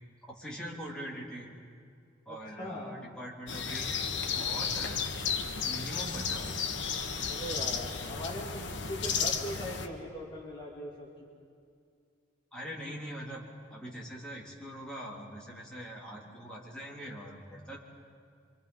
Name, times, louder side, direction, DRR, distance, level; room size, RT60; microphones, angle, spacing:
voice 1, 0.4-1.5 2.3-3.9 4.3-5.2 5.4-6.7 12.5-13.4 13.7-17.8, equal, 5° left, -5 dB, 3.6 m, -42 dB
voice 2, 2.3-3.1 7.3-11.3, equal, 25° left, -4 dB, 2.5 m, -41 dB
sound 1, 3.5-9.9, left 6 dB, 65° left, 1.5 m, -33 dB
27.0 x 25.5 x 5.5 m, 2.4 s
head